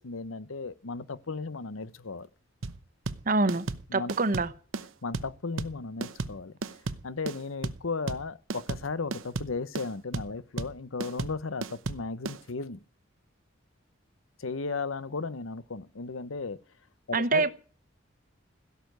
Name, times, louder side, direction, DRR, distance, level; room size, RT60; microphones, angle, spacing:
voice 1, 0.0-2.3 3.9-4.1 5.0-6.6 7.0-12.8 14.4-16.6 17.1-17.5, left 4 dB, 85° left, 0.9 m, -35 dB
sound 1, 2.6-12.4, right 3 dB, 80° right, 0.9 m, -34 dB
voice 2, 3.2-3.7 3.9-4.5 17.1-17.5, right 3 dB, 45° right, 1.0 m, -25 dB
16.5 x 6.9 x 9.4 m
head